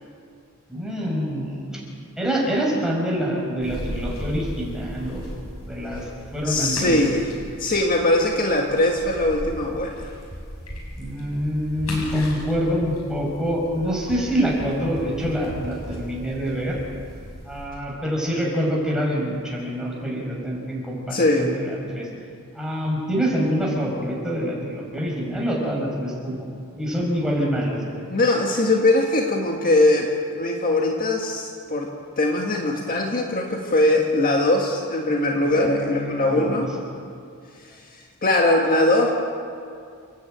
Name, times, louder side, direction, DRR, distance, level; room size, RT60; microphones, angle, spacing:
voice 1, 0.7-1.8 2.2-6.9 11.0-16.8 17.5-22.1 22.5-26.5 26.7-28.0 35.4-36.7, equal, 5° right, -3 dB, 5.5 m, -26 dB
sound 1, 3.6-17.7, equal, 85° left, 6.3 m, -37 dB
voice 2, 6.4-7.2 7.6-10.1 21.1-21.5 28.1-30.1 30.4-31.9 32.2-36.7 37.7-39.1, left 2 dB, 40° left, 0 dB, 1.8 m, -21 dB
29.5 x 10.5 x 8.9 m, 2.3 s
head